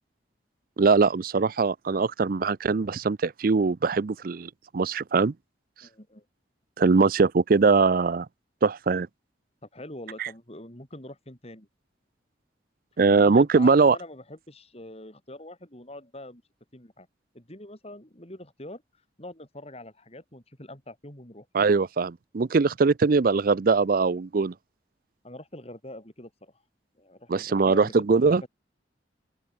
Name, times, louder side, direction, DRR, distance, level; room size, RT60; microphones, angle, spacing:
voice 1, 0.8-5.3 6.8-8.3 8.6-9.1 10.2-10.3 13.0-14.0 21.5-24.5 27.3-28.4, right 4 dB, 50° right, 0.5 m, -21 dB
voice 2, 5.8-6.2 9.6-11.7 13.1-16.4 16.7-17.1 17.3-18.8 19.2-21.5 25.2-26.6 26.9-28.5, left 1 dB, 35° left, 4.6 m, -44 dB
open air
head